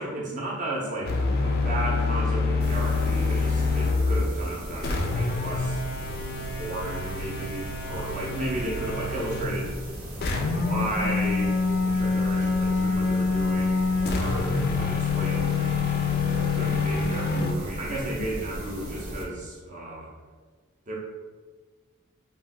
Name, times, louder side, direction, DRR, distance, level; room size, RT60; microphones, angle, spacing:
voice 1, 0.0-5.8 6.3-9.7 10.2-15.7 16.3-20.1 20.9-21.0, right 1 dB, 35° right, -4 dB, 0.5 m, -34 dB
sound 1, 1.1-4.3 4.8-9.5 10.2-17.5, left 4 dB, 45° left, 0.3 m, -26 dB
sound 2, 2.6-19.2, equal, 70° right, 0.8 m, -37 dB
2.3 x 2.3 x 3.6 m, 1.4 s
head